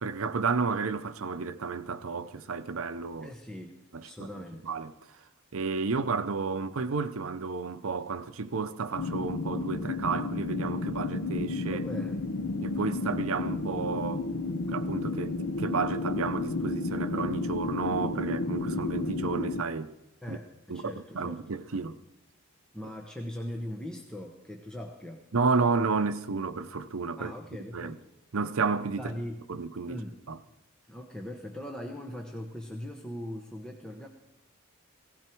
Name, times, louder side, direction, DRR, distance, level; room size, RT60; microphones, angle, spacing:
voice 1, 0.0-3.3 3.9-4.3 4.6-4.9 5.5-11.8 12.6-14.3 14.7-19.9 20.3-20.4 20.7-22.0 25.3-27.3 27.7-28.0 28.3-29.1 29.5-30.0 30.3-30.4, right 4 dB, 70° right, 0.7 m, -31 dB
voice 2, 3.2-4.6 11.7-12.2 20.2-21.4 22.7-25.2 27.2-28.0 29.0-29.4 29.9-30.2 30.9-34.1, left 1 dB, 5° left, 0.9 m, -40 dB
sound 1, 8.9-19.6, left 3 dB, 65° left, 0.8 m, -32 dB
17.0 x 16.0 x 4.5 m
head